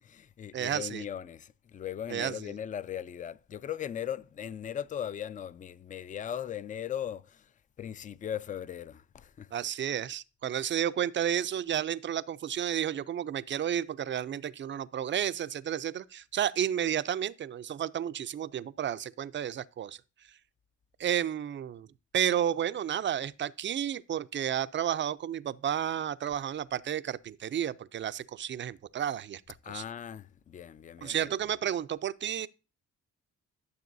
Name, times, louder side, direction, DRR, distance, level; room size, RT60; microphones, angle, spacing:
voice 1, 0.0-7.5 7.8-9.5 29.6-31.3, left 9 dB, 25° left, 0.3 m, -38 dB
voice 2, 0.5-1.0 2.1-2.5 9.5-20.0 21.0-21.9 22.1-29.8 31.0-32.5, right 10 dB, 40° right, 0.4 m, -32 dB
12.5 x 6.9 x 2.6 m
cardioid pair, 90°, 30 cm